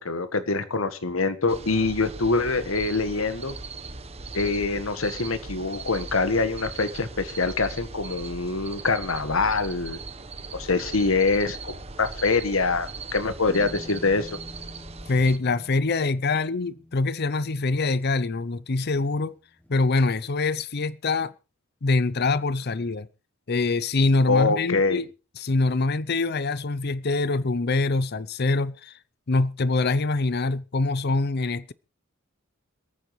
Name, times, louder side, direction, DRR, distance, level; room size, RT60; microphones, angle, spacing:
voice 1, 0.0-3.6 4.3-10.0 10.5-14.3 24.3-25.0, left 3 dB, 85° left, 1.6 m, -25 dB
sound 1, 1.5-15.4, right 3 dB, 30° right, 1.1 m, -39 dB
sound 2, 13.5-19.1 19.6-20.5, left 1 dB, 10° left, 2.1 m, -47 dB
voice 2, 15.1-19.4 19.7-21.3 21.8-23.1 23.5-25.1 25.4-28.9 29.3-31.7, left 3 dB, 50° left, 0.7 m, -24 dB
26.5 x 9.4 x 3.2 m
head